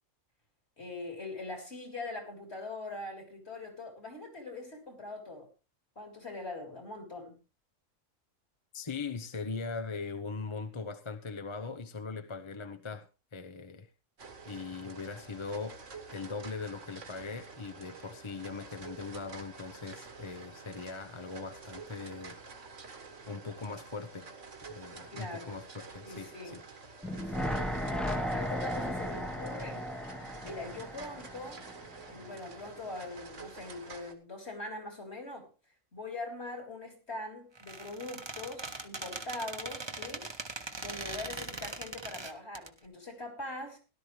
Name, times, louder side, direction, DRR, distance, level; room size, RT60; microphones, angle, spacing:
voice 1, 0.8-5.5 6.0-7.4 25.1-25.6 26.0-26.6 27.1-27.9 28.3-29.9 30.4-31.6 32.1-35.5 35.9-40.3 40.7-43.8, left 2 dB, 55° left, 4.1 m, -42 dB
voice 2, 8.7-13.9 14.4-15.8 16.1-22.4 23.3-24.3 24.7-26.6, left 4 dB, 25° left, 0.8 m, -40 dB
sound 1, 14.2-34.1, right 4 dB, 65° right, 1.9 m, -49 dB
sound 2, 27.0-32.2 32.5-32.6, equal, ahead, 1.0 m, -35 dB
Squeak, 37.5-42.7, right 3 dB, 20° right, 1.1 m, -41 dB
17.5 x 12.0 x 3.3 m
omnidirectional pair, 1.4 m